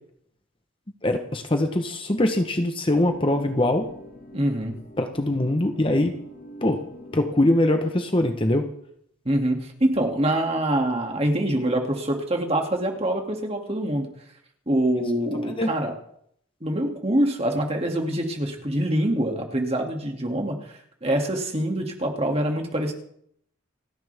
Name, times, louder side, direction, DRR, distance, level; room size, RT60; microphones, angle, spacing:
voice 1, 1.0-3.9 5.0-6.1 6.6-6.8 7.1-8.7 15.5-15.7, left 1 dB, 25° left, 6 dB, 1.0 m, -22 dB
sound 1, 2.9-8.1, equal, 40° left, 2.1 m, -44 dB
voice 2, 4.3-4.7 9.2-14.1 14.7-15.9 16.6-22.9, right 1 dB, 25° right, 2 dB, 2.4 m, -25 dB
29.0 x 10.5 x 3.5 m, 0.69 s
head